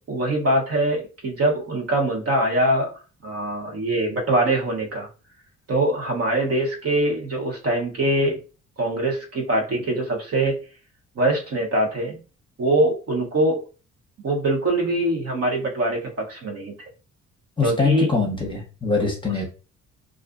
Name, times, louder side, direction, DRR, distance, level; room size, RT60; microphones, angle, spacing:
voice 1, 0.1-2.9 3.2-5.1 5.7-8.4 8.8-10.6 11.2-12.2 12.6-13.6 14.2-16.7 17.6-18.1, right 1 dB, 50° right, 1 dB, 0.9 m, -23 dB
voice 2, 17.6-19.5, left 4 dB, 15° left, 1 dB, 0.9 m, -23 dB
2.4 x 2.4 x 2.4 m, 0.33 s
cardioid pair, 90°, 30 cm